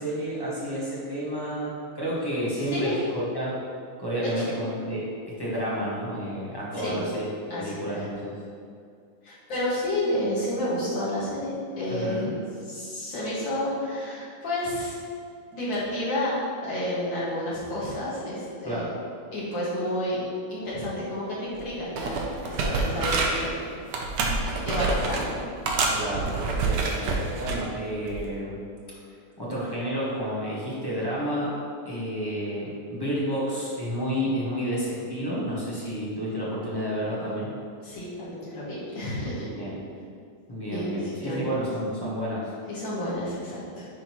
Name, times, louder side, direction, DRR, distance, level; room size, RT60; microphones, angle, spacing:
voice 1, 0.0-3.5 4.0-5.0 5.4-7.3 7.5-8.3 11.9-12.3 18.6-18.9 25.9-28.6 29.4-31.6 31.8-37.5 39.6-39.8 40.5-42.5, equal, 15° left, -8 dB, 1.1 m, -30 dB
voice 2, 2.6-3.0 4.2-4.6 6.7-7.1 7.5-8.1 9.2-12.4 12.6-15.0 15.5-16.3 16.6-18.9 19.3-20.2 20.5-23.6 24.1-24.3 24.6-25.4 37.8-39.5 40.7-41.5 42.7-43.9, left 1 dB, 70° left, -9 dB, 2.6 m, -30 dB
sound 1, 21.5-21.7 22.0-23.5 23.9-25.3 25.7-27.6 28.1-28.3, right 3 dB, 70° right, 1.3 m, -27 dB
9.9 x 3.9 x 3.0 m, 2.4 s
omnidirectional pair, 2.1 m